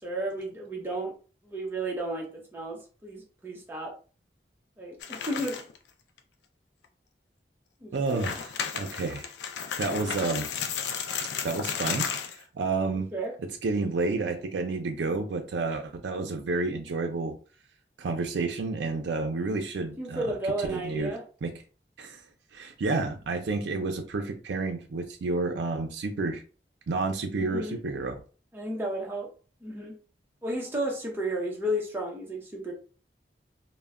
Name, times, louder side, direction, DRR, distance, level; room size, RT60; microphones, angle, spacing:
voice 1, 0.0-1.1 1.4-3.9 4.8-5.6 7.8-8.2 13.1-13.3 20.0-21.2 27.4-27.8 28.5-29.3 29.6-29.9 30.4-32.7, right 1 dB, 10° right, -1 dB, 0.6 m, -33 dB
sound 1, 5.0-5.8 6.2-6.3 6.8-6.9 8.0-12.4, left 7 dB, 80° left, 0.4 m, -33 dB
voice 2, 7.9-9.3 9.8-10.5 11.4-12.1 12.4-13.1 13.6-17.4 18.0-21.1 21.4-21.5 22.0-22.2 22.5-26.4 26.9-28.2, right 3 dB, 90° right, 4 dB, 0.4 m, -30 dB
2.1 x 2.1 x 3.4 m, 0.37 s
head